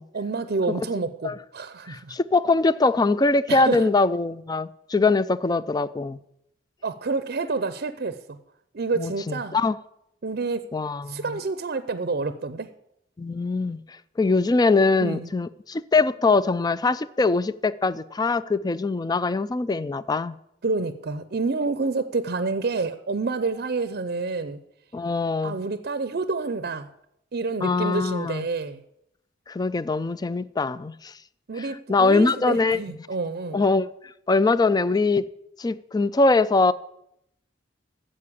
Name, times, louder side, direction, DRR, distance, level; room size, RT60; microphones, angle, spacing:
voice 1, 0.1-2.2 3.5-3.9 6.8-8.4 8.7-9.6 10.2-10.7 11.1-12.7 15.0-15.3 20.6-24.6 25.4-26.9 27.3-28.8 31.5-33.6, right 3 dB, 55° right, 0.6 m, -28 dB
voice 2, 1.9-6.2 9.0-9.7 10.7-11.4 13.2-13.8 14.2-20.4 24.9-25.6 27.6-28.5 29.5-31.1 31.6-32.8 33.5-33.9 34.3-35.3 35.6-36.7, left 3 dB, 20° left, 0.4 m, -22 dB
9.8 x 7.6 x 8.5 m
head